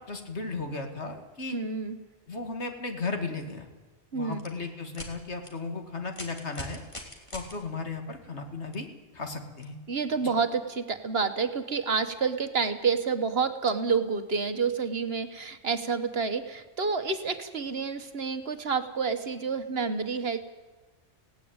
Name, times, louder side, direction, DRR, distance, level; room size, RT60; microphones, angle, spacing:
voice 1, 0.0-1.6 2.3-3.7 4.1-6.8 7.3-8.9 9.1-9.8 10.2-10.3, left 3 dB, 75° left, 5 dB, 2.6 m, -35 dB
voice 2, 1.5-2.0 4.1-4.4 9.9-20.4, right 5 dB, 60° right, 9 dB, 1.6 m, -29 dB
sound 1, 4.3-4.5 4.9-5.1 5.4-5.5 6.1-7.5 8.7-8.8 9.6-9.7, left 1 dB, 25° left, 3.0 m, -40 dB
18.5 x 17.0 x 8.8 m, 1.2 s
omnidirectional pair, 1.1 m